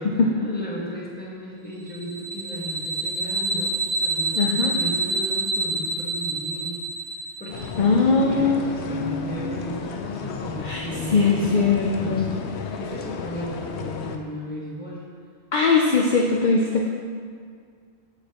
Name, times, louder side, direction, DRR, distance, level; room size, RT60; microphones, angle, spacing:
voice 1, 0.0-6.8 7.2-15.0, equal, 10° left, -6 dB, 1.4 m, -35 dB
sound 1, 1.9-7.8, right 2 dB, 65° right, 2.1 m, -27 dB
voice 2, 4.4-4.7 7.8-9.6 10.6-10.8 11.1-12.3 15.5-16.9, left 4 dB, 50° left, -1 dB, 0.7 m, -21 dB
sound 2, 7.5-14.2, left 5 dB, 80° left, 0.9 m, -33 dB
8.2 x 7.1 x 3.0 m, 2.1 s
omnidirectional pair, 1.1 m